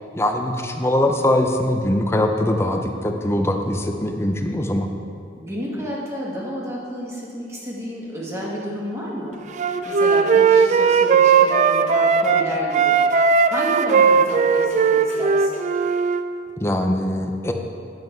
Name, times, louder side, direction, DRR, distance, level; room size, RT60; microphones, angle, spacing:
voice 1, 0.1-4.9 16.6-17.5, left 1 dB, 15° left, 4 dB, 0.5 m, -22 dB
voice 2, 5.4-9.4 9.8-13.0 13.5-15.6, equal, 15° right, -5 dB, 1.7 m, -30 dB
Wind instrument woodwind instrument, 9.6-12.5 12.7-16.2, right 5 dB, 40° right, 0.3 m, -17 dB
9.5 x 7.6 x 4.5 m, 2.5 s
head